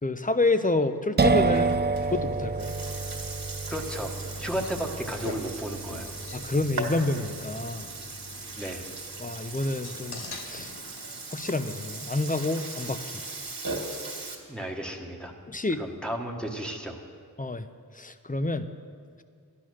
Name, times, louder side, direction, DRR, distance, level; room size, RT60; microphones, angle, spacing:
voice 1, 0.0-1.7 2.1-2.8 6.3-7.9 9.2-10.7 11.3-13.2 15.5-15.8 17.4-17.7 17.9-18.7, left 2 dB, 20° left, 10 dB, 0.7 m, -28 dB
sound 1, 1.2-8.7, right 4 dB, 25° right, 0.4 m, -29 dB
Burping eructation, 1.2-14.4, right 3 dB, 60° right, 2.1 m, -39 dB
sound 2, 3.7-12.1, left 3 dB, 80° left, 1.2 m, -45 dB
voice 2, 3.7-6.2 8.6-8.9 14.5-15.3 15.8-17.0, right 1 dB, ahead, 1 dB, 1.5 m, -34 dB
12.5 x 11.0 x 6.4 m, 2.1 s
wide cardioid pair, 50°, 38 cm